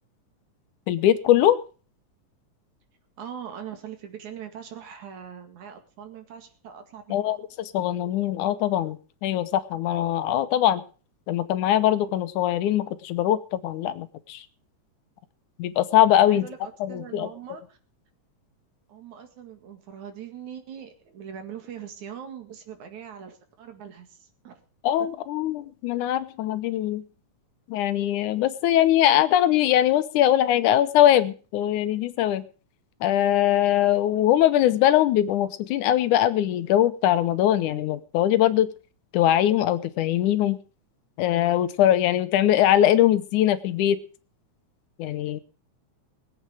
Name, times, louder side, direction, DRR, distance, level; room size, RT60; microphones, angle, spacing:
voice 1, 0.9-1.6 7.1-10.8 11.3-14.4 15.6-16.5 16.8-17.3 24.8-27.0 27.7-32.4 33.0-38.7 39.1-40.6 41.2-44.0 45.0-45.4, left 12 dB, 80° left, 12 dB, 2.3 m, -21 dB
voice 2, 3.2-7.4 16.3-17.8 18.9-24.6, right 8 dB, 70° right, 6 dB, 3.3 m, -41 dB
20.5 x 8.7 x 4.9 m, 0.37 s
omnidirectional pair, 3.6 m